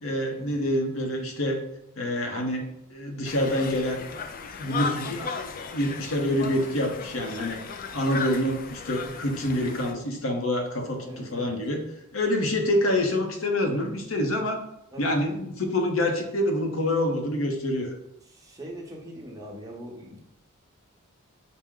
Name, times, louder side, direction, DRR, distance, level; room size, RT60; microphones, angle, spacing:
voice 1, 0.0-1.6 2.0-4.2 4.6-7.6 7.9-11.8 12.1-14.6 15.0-17.9, left 1 dB, 70° left, 3 dB, 0.8 m, -27 dB
Conversation, 3.2-9.9, left 5 dB, 40° left, 0.3 m, -36 dB
voice 2, 11.0-11.6 14.9-15.1 18.3-20.2, equal, 15° right, -1 dB, 0.8 m, -42 dB
5.9 x 2.1 x 3.6 m, 0.81 s
head